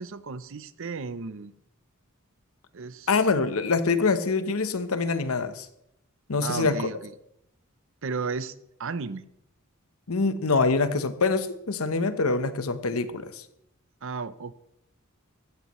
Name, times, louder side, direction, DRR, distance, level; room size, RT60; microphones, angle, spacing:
voice 1, 0.0-1.5 2.7-3.1 6.4-7.1 8.0-8.5 8.8-9.3 14.0-14.6, right 4 dB, 65° right, 14 dB, 0.7 m, -34 dB
voice 2, 3.1-5.7 6.3-6.9 10.1-13.4, left 4 dB, 80° left, 11 dB, 1.0 m, -25 dB
15.0 x 13.5 x 3.1 m, 0.78 s
head